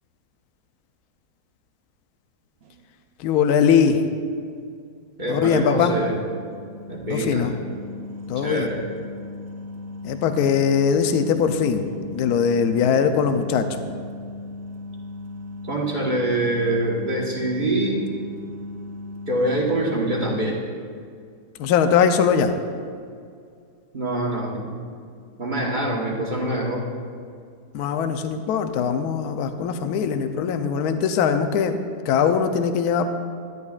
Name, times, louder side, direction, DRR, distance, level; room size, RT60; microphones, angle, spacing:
sound 1, 2.6-2.8 5.4-20.6, left 2 dB, 75° right, 0.5 m, -37 dB
voice 1, 3.2-4.0 5.3-6.0 7.1-7.5 8.3-8.7 10.0-11.9 12.1-13.8 21.6-22.5 27.7-31.8 32.1-33.1, left 7 dB, 75° left, 7 dB, 1.1 m, -21 dB
voice 2, 5.2-6.2 6.9-7.5 8.4-8.8 15.6-18.0 19.3-20.6 23.9-24.7 25.4-26.9, right 1 dB, 30° right, -3 dB, 1.2 m, -25 dB
12.5 x 10.5 x 2.4 m, 2.2 s
omnidirectional pair, 1.8 m